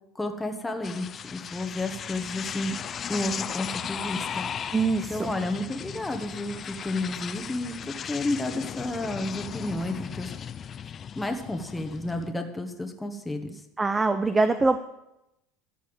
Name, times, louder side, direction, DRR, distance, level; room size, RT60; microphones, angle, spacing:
voice 1, 0.1-2.8 3.1-4.5 5.1-10.3 11.1-13.6, left 2 dB, 10° left, 4 dB, 1.3 m, -31 dB
sound 1, 0.8-12.3, left 8 dB, 35° left, 0.4 m, -36 dB
voice 2, 4.7-5.3 13.8-14.8, right 3 dB, 15° right, 9 dB, 0.7 m, -23 dB
13.0 x 5.6 x 8.9 m, 0.87 s
supercardioid pair, 120°, 0 cm